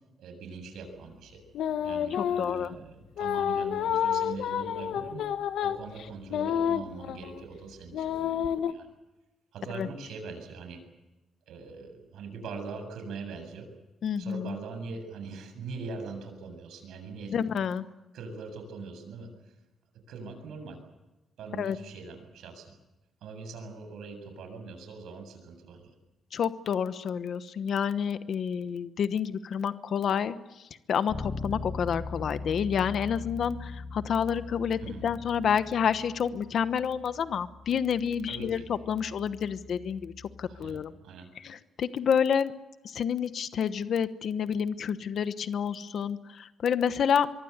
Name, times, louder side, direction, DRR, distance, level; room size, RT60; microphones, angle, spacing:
voice 1, 0.2-1.4 1.8-5.3 5.6-8.9 9.5-10.8 11.5-13.7 14.2-17.3 18.1-19.3 20.1-20.8 21.4-22.7 23.2-25.9 34.8-35.1 38.3-38.7 40.5-41.3, right 4 dB, 80° right, 6 dB, 7.5 m, -42 dB
sound 1, 1.5-2.7 3.2-7.4 7.9-8.7, left 9 dB, 75° left, 1.4 m, -29 dB
voice 2, 2.1-2.8 9.7-9.9 14.0-14.6 17.3-17.8 21.6-21.8 26.3-40.9 41.4-42.5 42.8-47.3, left 7 dB, 50° left, 12 dB, 1.1 m, -29 dB
Bass guitar, 31.1-40.9, left 3 dB, 25° left, 1.9 m, -41 dB
24.5 x 23.5 x 8.1 m, 1.0 s
cardioid pair, 180°, 0 cm